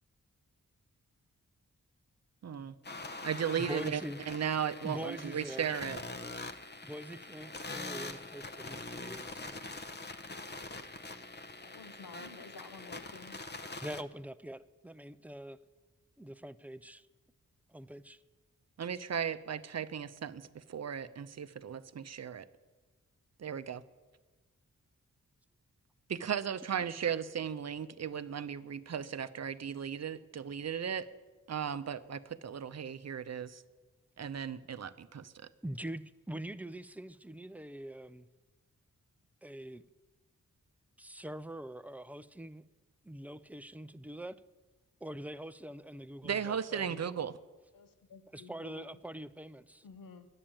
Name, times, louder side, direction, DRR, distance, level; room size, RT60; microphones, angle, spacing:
voice 1, 2.4-2.8 3.2-4.0 4.3-6.0 18.8-22.5 23.4-23.8 26.1-31.1 31.5-33.6 34.2-35.5 46.2-47.4, right 8 dB, 50° right, 13 dB, 0.7 m, -36 dB
sound 1, 2.8-14.0, left 2 dB, 30° left, 0.8 m, -44 dB
voice 2, 3.6-4.2 4.8-5.7 6.8-9.6 13.8-15.6 16.2-17.1 17.7-18.2 35.6-38.3 39.4-39.8 41.0-42.6 43.0-44.4 45.0-47.0 48.3-49.9, right 1 dB, 5° right, 14 dB, 0.4 m, -44 dB
voice 3, 11.6-13.4 47.7-49.0 49.8-50.3, left 5 dB, 85° left, 8 dB, 1.0 m, -52 dB
9.9 x 7.2 x 9.0 m, 1.3 s
cardioid pair, 50°, 33 cm